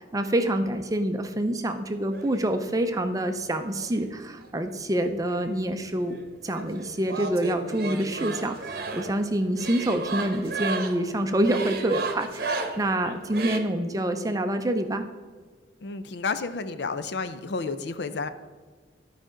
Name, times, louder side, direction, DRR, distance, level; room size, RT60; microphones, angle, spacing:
voice 1, 0.1-6.2 6.4-15.1, right 1 dB, 20° right, 7 dB, 0.5 m, -27 dB
sound 1, 2.1-3.0 3.8-5.0 5.2-13.6, right 3 dB, 55° right, 0.9 m, -35 dB
voice 2, 15.8-18.3, left 4 dB, 60° left, 11 dB, 0.5 m, -31 dB
12.5 x 5.0 x 3.8 m, 1.5 s
head